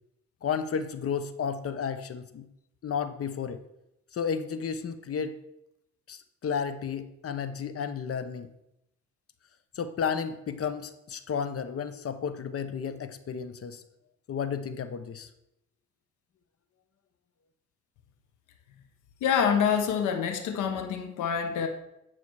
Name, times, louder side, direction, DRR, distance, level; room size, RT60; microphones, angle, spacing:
voice 1, 0.4-2.5 2.8-3.6 4.1-5.4 6.1-8.5 9.7-13.8 14.3-15.3, left 6 dB, 50° left, 11 dB, 0.9 m, -32 dB
voice 2, 19.2-21.7, left 7 dB, 85° left, 7 dB, 1.0 m, -26 dB
9.7 x 5.8 x 4.7 m, 0.83 s
cardioid pair, 90°, 30 cm